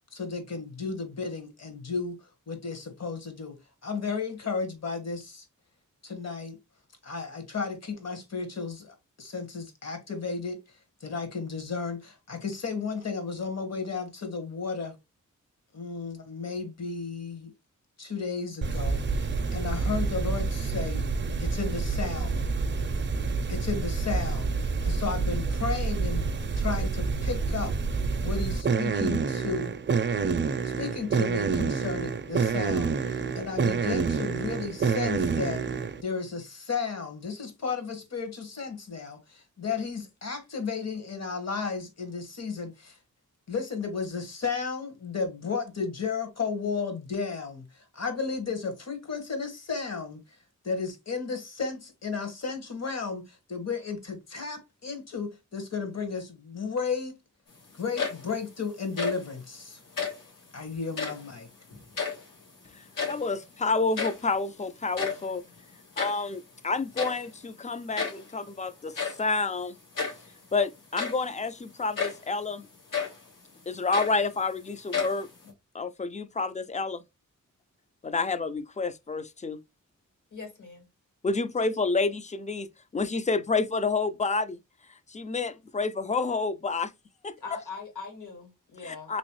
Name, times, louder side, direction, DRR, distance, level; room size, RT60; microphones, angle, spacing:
voice 1, 0.1-2.2 2.5-5.4 6.0-6.6 7.0-10.6 11.0-14.9 15.7-17.5 18.0-21.1 21.4-22.5 23.5-26.2 26.6-27.7 28.2-29.8 30.6-35.6 36.0-43.0 43.5-50.2 50.6-57.2 57.8-59.8 60.5-61.5, left 5 dB, 55° left, 1.3 m, -33 dB
sound 1, 18.6-36.0, right 5 dB, 35° right, 0.5 m, -28 dB
sound 2, 57.8-58.5 58.8-59.3 59.9-60.3 60.9-61.3 61.7-62.5 62.8-63.4 63.7-63.8 64.0-64.3 64.8-66.3 67.0-67.3 68.0-68.3 68.9-69.3 70.0-70.3 70.8-71.3 72.0-72.3 72.9-73.2 73.7-74.5 74.9-75.5, left 5 dB, 85° left, 1.5 m, -32 dB
voice 2, 62.7-65.4 66.0-69.8 70.5-72.7 73.7-75.3 75.7-77.0 78.0-79.6 81.2-84.6 85.1-86.9 87.2-87.4 88.8-89.2, left 3 dB, 25° left, 0.3 m, -29 dB
voice 3, 80.3-80.8 87.4-89.2, left 5 dB, 70° left, 1.9 m, -41 dB
3.2 x 3.0 x 3.0 m
wide cardioid pair, 85°, 32 cm